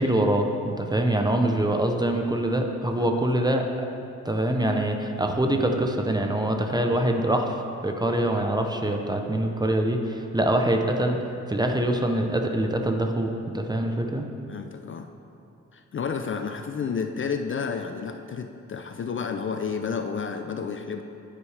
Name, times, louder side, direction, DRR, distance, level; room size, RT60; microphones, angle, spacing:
voice 1, 0.0-3.9 4.2-11.2 11.5-14.3, right 1 dB, 15° right, 3 dB, 0.6 m, -24 dB
voice 2, 14.5-15.1 15.7-21.0, left 6 dB, 40° left, 6 dB, 0.4 m, -31 dB
10.0 x 9.2 x 3.3 m, 2.7 s
wide cardioid pair, 150°, 31 cm